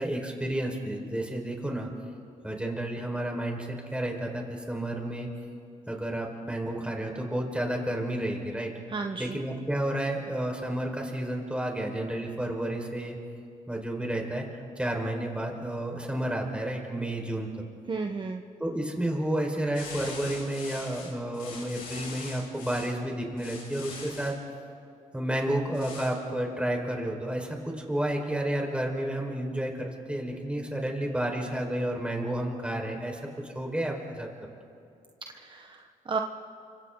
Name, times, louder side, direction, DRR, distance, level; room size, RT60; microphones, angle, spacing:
voice 1, 0.0-1.9 2.4-5.3 5.9-8.7 9.2-13.2 13.7-17.5 18.6-24.4 25.1-34.3, right 1 dB, 10° right, 1 dB, 4.8 m, -31 dB
voice 2, 8.9-9.4 17.9-18.4 35.3-36.2, right 4 dB, 35° right, 4 dB, 1.2 m, -33 dB
sound 1, 19.7-22.9 23.4-24.3 25.7-26.1, left 4 dB, 85° left, 6.6 m, -42 dB
29.5 x 26.0 x 3.9 m, 2.6 s
cardioid pair, 70°, 14 cm